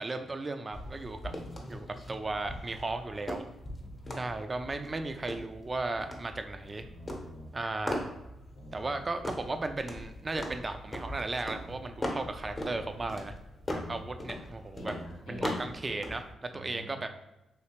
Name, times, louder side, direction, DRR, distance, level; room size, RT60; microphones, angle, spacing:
voice 1, 0.0-1.3 1.7-3.4 4.1-6.9 7.5-8.1 8.7-13.3 13.9-14.9 15.3-17.1, right 2 dB, 35° right, 7 dB, 0.4 m, -35 dB
sound 1, 0.7-16.3, left 1 dB, 30° left, 0.8 m, -40 dB
voice 2, 3.8-4.3 6.7-7.5 8.6-9.0 13.7-14.1 14.8-15.6 16.5-17.0, equal, 85° left, -3 dB, 0.8 m, -47 dB
3.2 x 2.8 x 2.8 m, 0.94 s
supercardioid pair, 50°, 0 cm